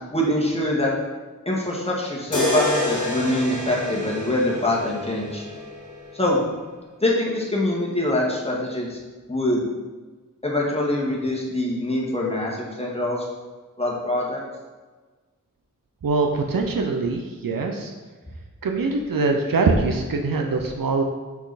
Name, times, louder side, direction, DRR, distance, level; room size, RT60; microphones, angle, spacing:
voice 1, 0.1-0.9 1.5-5.4 6.1-6.4 7.0-9.0 9.3-9.7 10.4-13.2 13.8-14.4, left 1 dB, 20° left, -4 dB, 1.7 m, -24 dB
sound 1, 2.3-6.4, left 1 dB, 60° left, 1.6 m, -28 dB
voice 2, 16.0-17.9 18.6-21.0, right 3 dB, 90° right, 3 dB, 0.7 m, -23 dB
6.1 x 5.8 x 4.1 m, 1.3 s
wide cardioid pair, 85°, 33 cm